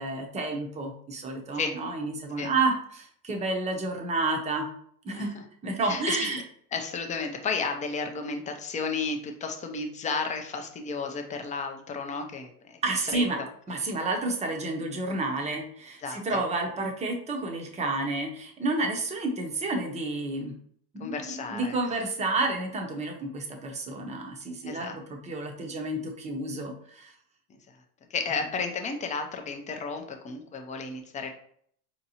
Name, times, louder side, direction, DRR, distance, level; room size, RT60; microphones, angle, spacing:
voice 1, 0.0-4.7 5.0-5.4 5.6-6.4 12.8-13.4 13.7-20.5 20.9-27.1, right 2 dB, 15° right, 2 dB, 0.7 m, -30 dB
voice 2, 5.1-5.4 5.8-6.3 6.7-12.8 13.1-13.2 13.8-13.9 16.0-16.4 21.0-21.8 24.6-24.9 27.5-27.8 28.1-31.3, left 4 dB, 15° left, 4 dB, 0.5 m, -33 dB
4.5 x 2.8 x 2.8 m, 0.62 s
hypercardioid pair, 100°, 48 cm